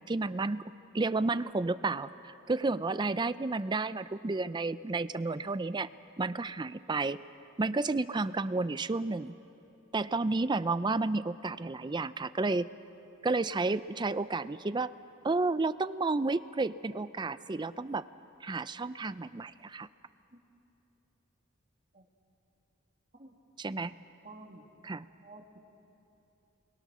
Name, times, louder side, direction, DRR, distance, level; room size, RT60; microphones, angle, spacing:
voice 1, 0.1-0.6 0.9-5.9 6.2-7.2 7.6-9.3 9.9-12.7 13.2-14.9 15.2-18.1 18.4-19.9 23.6-23.9 24.8-25.1, right 3 dB, 20° right, 15 dB, 0.4 m, -31 dB
voice 2, 24.2-24.6 25.2-25.6, right 2 dB, 40° right, 2 dB, 2.2 m, -50 dB
28.0 x 21.5 x 6.2 m, 2.9 s
head